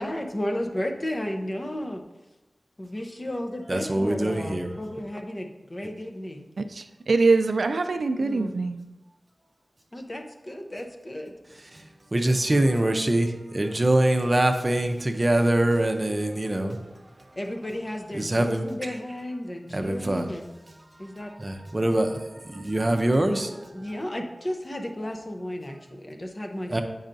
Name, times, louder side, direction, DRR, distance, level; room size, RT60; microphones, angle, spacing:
voice 1, 0.0-2.0 2.8-6.5 8.2-8.5 9.9-11.3 17.4-20.5 21.0-21.3 23.7-26.8, left 1 dB, 30° left, 0.6 m, -33 dB
voice 2, 3.7-4.7 11.7-11.8 12.1-16.8 18.1-18.6 19.7-20.3 21.4-23.7 26.7-26.8, right 1 dB, 30° right, 0.6 m, -24 dB
voice 3, 6.6-8.9, right 3 dB, 80° right, 0.3 m, -23 dB
8.6 x 5.5 x 2.6 m
wide cardioid pair, 85°, 0 cm